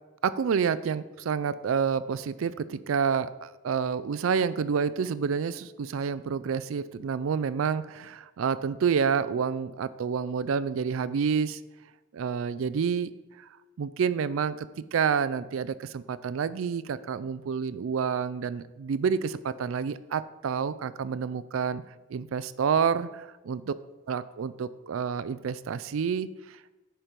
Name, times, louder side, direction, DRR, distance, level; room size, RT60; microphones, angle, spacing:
voice 1, 0.2-11.6 12.1-13.1 13.4-13.5 13.8-21.8 22.1-23.7 24.1-26.7, right 6 dB, 80° right, 16 dB, 0.4 m, -29 dB
10.0 x 4.5 x 5.1 m, 1.1 s
head